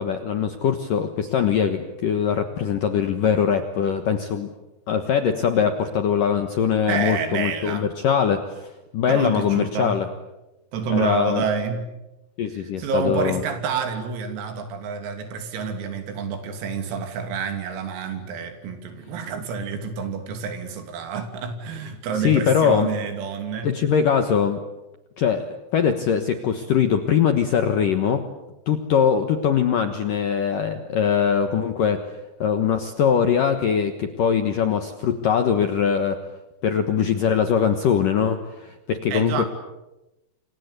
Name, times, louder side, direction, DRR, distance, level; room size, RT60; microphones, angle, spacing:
voice 1, 0.0-4.5 4.9-10.1 10.9-11.4 12.4-13.4 22.2-22.9 23.6-24.6 25.2-28.2 28.7-32.0 32.4-36.2 36.6-39.4, left 7 dB, 70° left, 7 dB, 2.0 m, -22 dB
voice 2, 6.9-7.9 9.0-10.0 10.7-11.8 12.5-23.7 39.1-39.5, right 5 dB, 90° right, 7 dB, 5.7 m, -28 dB
28.5 x 25.0 x 8.3 m, 0.98 s
omnidirectional pair, 5.9 m